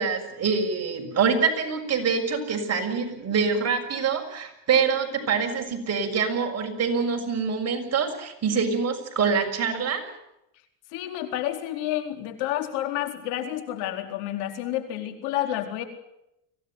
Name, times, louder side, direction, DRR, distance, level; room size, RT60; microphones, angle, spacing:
voice 1, 0.0-10.1, right 5 dB, 35° right, 2 dB, 6.4 m, -25 dB
voice 2, 10.9-15.8, left 12 dB, 80° left, 6 dB, 4.4 m, -30 dB
24.5 x 17.5 x 9.5 m, 0.84 s
cardioid pair, 120°, 46 cm